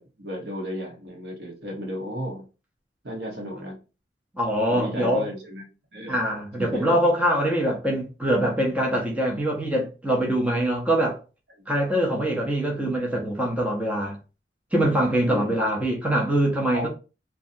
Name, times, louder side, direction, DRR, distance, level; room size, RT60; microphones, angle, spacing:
voice 1, 0.0-2.4 3.0-3.8 4.7-6.2 6.6-7.0 11.6-11.7 15.2-15.6 16.7-16.9, equal, 70° right, 1.1 m, -34 dB
voice 2, 4.3-5.2 6.1-11.2 11.7-14.2 14.7-16.9, right 1 dB, 10° right, 0.5 m, -23 dB
2.5 x 2.3 x 2.5 m
head